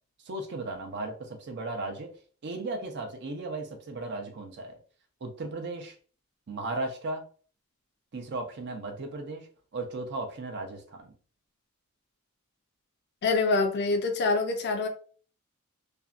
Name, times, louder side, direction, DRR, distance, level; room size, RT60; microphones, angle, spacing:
voice 1, 0.2-2.1 2.4-4.8 5.2-5.9 6.5-7.2 8.1-11.1, right 2 dB, 55° right, 4 dB, 0.5 m, -36 dB
voice 2, 13.2-14.9, left 3 dB, 55° left, 5 dB, 0.5 m, -25 dB
2.5 x 2.1 x 2.4 m, 0.41 s
head